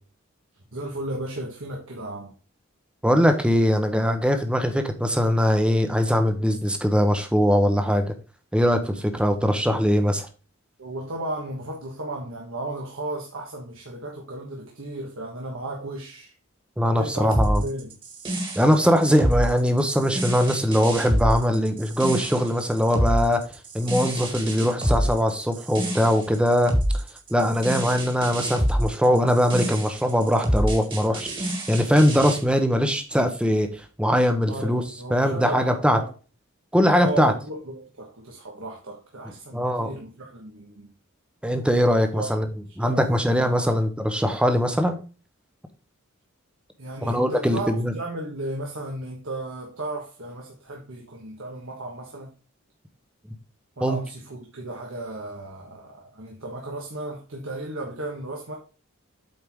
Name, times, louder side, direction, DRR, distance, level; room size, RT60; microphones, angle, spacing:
voice 1, 0.7-2.3 10.8-16.3 16.9-17.9 34.5-36.1 37.0-40.9 41.9-42.3 42.8-43.0 43.3-43.8 46.8-52.3 53.8-58.5, right 2 dB, 70° right, 1.4 m, -35 dB
voice 2, 3.0-8.1 8.5-10.3 16.8-17.6 18.5-23.4 23.7-26.7 27.3-34.8 35.1-36.0 36.7-37.3 39.5-39.9 41.4-42.5 42.8-45.0 47.0-47.9 53.8-54.0, equal, 5° right, 0.9 m, -21 dB
sound 1, 17.3-32.4, equal, 25° right, 1.8 m, -27 dB
8.1 x 4.6 x 3.6 m
head